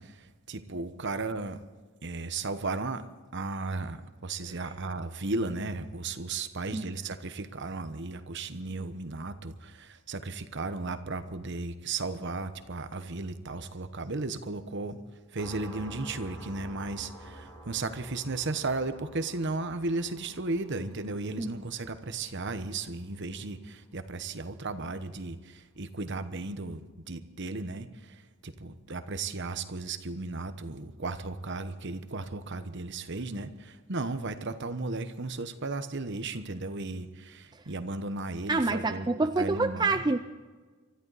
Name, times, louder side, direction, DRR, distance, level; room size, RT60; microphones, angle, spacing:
voice 1, 0.0-1.6 2.0-3.0 3.3-15.0 15.3-39.1 39.4-40.0, right 3 dB, 50° right, 10 dB, 1.0 m, -35 dB
sound 1, 15.4-24.6, right 1 dB, 20° left, 4.6 m, -49 dB
voice 2, 38.5-40.2, right 3 dB, 20° right, 8 dB, 0.4 m, -27 dB
24.0 x 14.0 x 4.1 m, 1.4 s
head